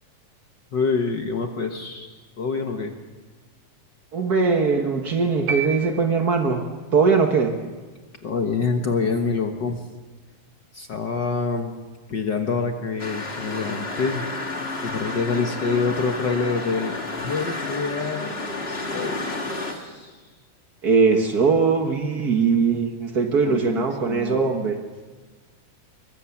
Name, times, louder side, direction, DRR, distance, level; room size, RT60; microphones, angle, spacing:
voice 1, 0.7-2.9 8.2-9.9 10.7-11.7 12.1-14.2 14.8-18.3 18.7-20.2 23.4-24.5, left 4 dB, 70° left, 4 dB, 1.0 m, -26 dB
voice 2, 4.1-7.6 20.8-24.8, right 5 dB, 80° right, 4 dB, 0.8 m, -21 dB
sound 1, 5.5-6.7, right 5 dB, 50° right, 2.5 m, -31 dB
sound 2, 13.0-19.7, left 3 dB, 25° left, 1.7 m, -31 dB
26.0 x 22.5 x 7.2 m, 1.3 s
omnidirectional pair, 4.0 m